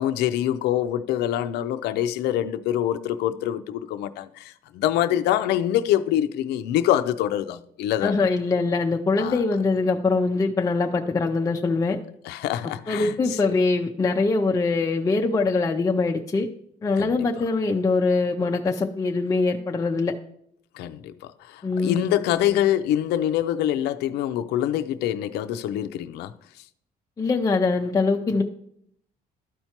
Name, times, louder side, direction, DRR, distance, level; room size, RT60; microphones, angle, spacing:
voice 1, 0.0-8.3 9.2-9.4 12.3-13.1 17.0-17.1 20.7-26.3, left 11 dB, 80° left, 0.4 m, -25 dB
voice 2, 8.0-12.0 12.6-16.5 16.8-20.1 21.6-22.1 27.2-28.4, left 3 dB, 20° left, 0.4 m, -23 dB
12.5 x 4.4 x 2.9 m
cardioid pair, 110°, 17 cm